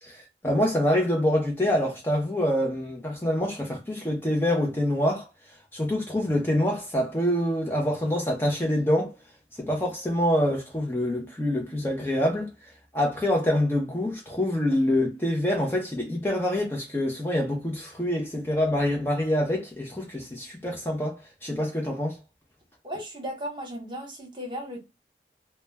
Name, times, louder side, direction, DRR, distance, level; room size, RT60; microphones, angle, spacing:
voice 1, 0.0-5.3 5.7-9.1 9.6-12.5 12.9-22.2, left 1 dB, 15° left, 0.4 m, -26 dB
voice 2, 22.8-24.8, equal, 25° right, 0.8 m, -35 dB
2.1 x 2.1 x 3.1 m
head